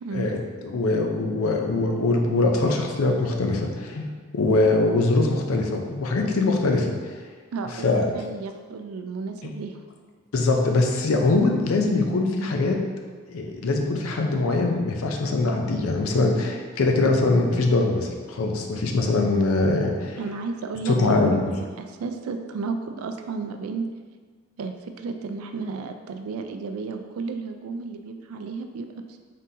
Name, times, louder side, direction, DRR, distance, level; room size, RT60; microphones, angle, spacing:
voice 1, 0.1-6.9 7.8-8.1 9.4-9.5 10.3-12.8 13.3-20.2 20.9-21.5, left 2 dB, 80° left, 2 dB, 0.5 m, -22 dB
voice 2, 7.5-7.9 8.1-9.8 20.2-23.8 24.6-28.9, right 4 dB, 90° right, 6 dB, 0.3 m, -33 dB
3.8 x 3.6 x 2.7 m, 1.5 s
head